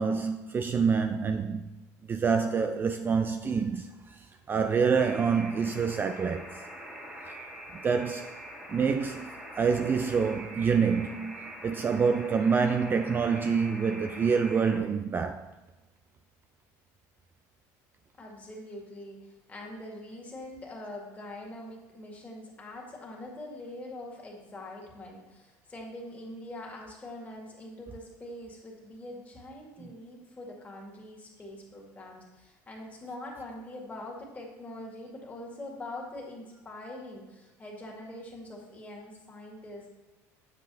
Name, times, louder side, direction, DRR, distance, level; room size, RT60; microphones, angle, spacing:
voice 1, 0.0-1.7 2.1-6.6 7.3-7.4 7.7-8.4 8.7-9.3 9.6-15.5, right 5 dB, 25° right, 0.3 m, -27 dB
Alarm, 4.9-14.8, right 1 dB, 10° right, 1.7 m, -44 dB
voice 2, 18.2-39.9, left 1 dB, 20° left, 2.0 m, -43 dB
7.4 x 7.3 x 2.7 m
supercardioid pair, 100°, 8 cm